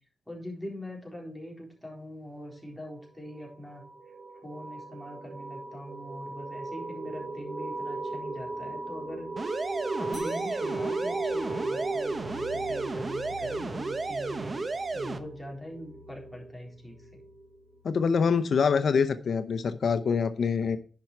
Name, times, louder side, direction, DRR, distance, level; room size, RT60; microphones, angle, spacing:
voice 1, 0.3-3.8 4.3-9.6 9.9-17.2, equal, ahead, 3.9 m, -42 dB
sound 1, 3.3-17.8, right 2 dB, 65° right, 4.2 m, -37 dB
sound 2, 9.4-15.2, right 3 dB, 40° right, 0.9 m, -33 dB
sound 3, 10.1-15.0, left 3 dB, 30° left, 3.3 m, -51 dB
voice 2, 17.8-20.8, left 5 dB, 75° left, 0.6 m, -25 dB
10.5 x 5.7 x 4.5 m
wide cardioid pair, 100°, 0 cm